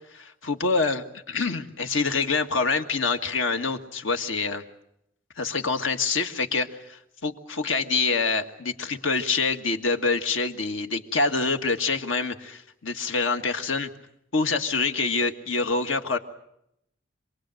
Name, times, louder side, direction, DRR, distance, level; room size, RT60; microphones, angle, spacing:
voice 1, 0.1-4.6 5.4-13.9 14.3-16.2, left 4 dB, 85° left, 6 dB, 1.8 m, -26 dB
27.0 x 20.5 x 7.8 m, 0.78 s
head